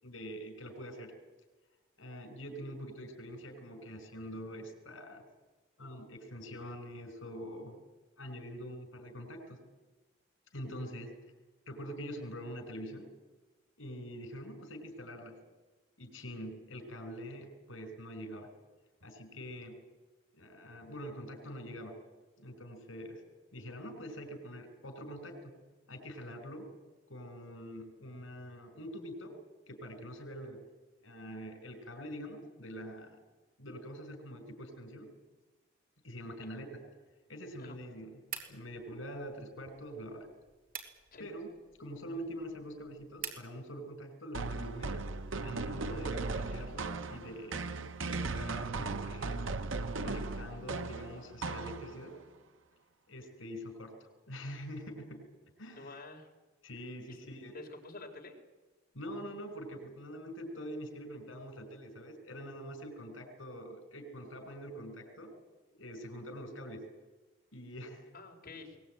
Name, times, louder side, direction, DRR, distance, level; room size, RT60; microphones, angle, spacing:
voice 1, 0.0-1.1 2.0-5.2 5.8-7.7 8.2-9.6 10.5-11.3 11.7-13.1 13.8-15.4 16.0-18.5 19.0-19.8 20.3-21.9 22.4-23.2 23.5-25.5 25.9-26.6 27.1-29.3 29.7-30.6 31.0-33.2 33.6-35.1 36.0-36.8 37.3-38.2 38.5-40.3 41.2-41.5 41.8-45.1 45.4-49.4 50.0-52.1 53.1-55.2 55.6-56.0 56.6-57.5 58.9-65.3 65.8-66.9 67.5-68.1, equal, 80° left, 7 dB, 5.0 m, -45 dB
sound 1, 38.3-43.5, right 7 dB, 50° right, 3.5 m, -48 dB
sound 2, 44.3-52.2, right 3 dB, 75° right, 1.0 m, -37 dB
voice 2, 55.7-56.3 57.1-57.2 57.5-58.3 68.1-68.8, left 3 dB, 45° left, 2 dB, 4.2 m, -48 dB
22.0 x 19.5 x 9.0 m, 1.2 s
head